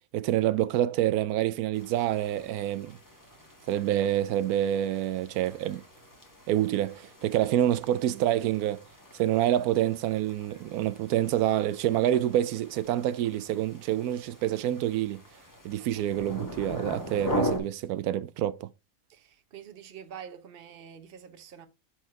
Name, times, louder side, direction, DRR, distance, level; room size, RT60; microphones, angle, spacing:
voice 1, 0.1-3.0 3.7-5.8 6.5-8.8 9.1-15.2 15.6-18.7, right 12 dB, 90° right, 1.1 m, -27 dB
sound 1, 1.7-17.6, equal, 15° left, 1.5 m, -40 dB
voice 2, 19.1-21.7, right 8 dB, 45° right, 1.0 m, -46 dB
6.4 x 4.5 x 4.6 m
omnidirectional pair, 1.5 m